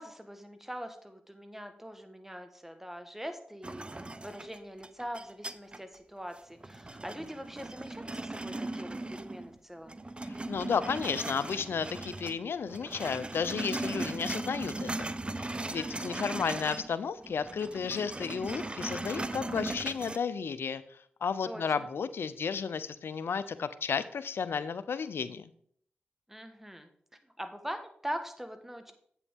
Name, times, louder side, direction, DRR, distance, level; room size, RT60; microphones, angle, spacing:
voice 1, 0.0-10.0 15.7-16.0 21.4-21.6 26.3-26.9 27.4-28.9, equal, 10° right, 7 dB, 1.4 m, -42 dB
sound 1, 3.6-6.0 6.4-9.6 9.9-12.4 12.6-16.9 17.2-20.2, right 2 dB, 25° right, 0.5 m, -38 dB
voice 2, 10.3-15.1 15.7-25.5, left 6 dB, 70° left, 14 dB, 0.6 m, -33 dB
8.3 x 7.1 x 3.6 m, 0.63 s
supercardioid pair, 40°, 4 cm